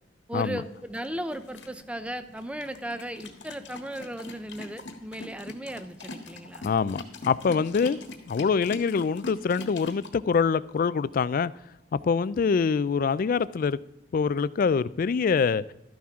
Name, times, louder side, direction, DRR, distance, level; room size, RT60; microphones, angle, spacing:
voice 1, 0.3-6.7, right 1 dB, 5° right, 0.6 m, -36 dB
sound 1, 0.6-10.1, left 2 dB, 75° left, 1.5 m, -44 dB
voice 2, 6.6-8.0 8.3-11.5 11.9-13.8 14.1-15.6, left 5 dB, 50° left, 0.3 m, -25 dB
12.5 x 10.0 x 3.6 m
head